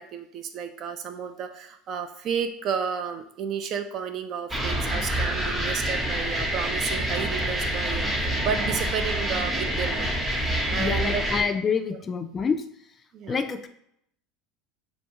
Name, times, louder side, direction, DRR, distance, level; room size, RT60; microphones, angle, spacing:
voice 1, 0.0-11.2 13.1-13.4, right 7 dB, 50° right, 8 dB, 0.4 m, -32 dB
sound 1, 4.5-11.4, right 1 dB, 10° right, 0.7 m, -27 dB
voice 2, 10.8-12.6 13.3-13.7, left 5 dB, 30° left, 8 dB, 0.3 m, -27 dB
2.6 x 2.1 x 2.9 m, 0.73 s
hypercardioid pair, 90°, 0 cm